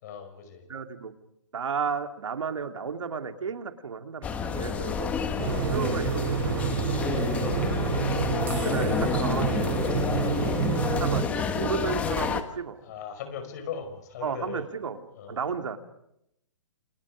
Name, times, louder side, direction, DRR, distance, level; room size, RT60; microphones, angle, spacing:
voice 1, 0.0-0.6 4.6-5.1 12.8-14.6 15.2-15.4, left 7 dB, 35° left, 7 dB, 5.5 m, -39 dB
voice 2, 0.7-1.1 1.5-5.3 5.7-6.7 7.6-7.9 8.6-9.8 10.8-12.8 14.2-15.0 15.3-15.8, right 6 dB, 85° right, 6 dB, 3.1 m, -33 dB
sound 1, 4.2-12.4, left 6 dB, 10° left, 1.2 m, -29 dB
sound 2, 5.4-11.2, right 7 dB, 45° right, 3.5 m, -28 dB
sound 3, 8.4-15.0, right 7 dB, 15° right, 5.5 m, -52 dB
29.0 x 26.5 x 5.0 m, 0.77 s
hypercardioid pair, 170°, 16 cm